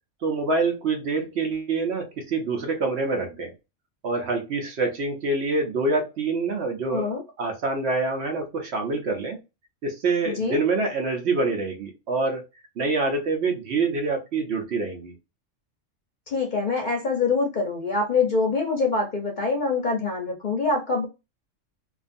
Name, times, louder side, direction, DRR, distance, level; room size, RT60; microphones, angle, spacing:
voice 1, 0.2-3.5 4.0-7.1 7.4-9.4 9.8-12.4 12.8-15.1, right 3 dB, 65° right, 1.0 m, -26 dB
voice 2, 6.9-7.2 10.3-10.6 16.3-21.1, left 4 dB, 50° left, 0.6 m, -25 dB
2.5 x 2.4 x 2.4 m
omnidirectional pair, 1.3 m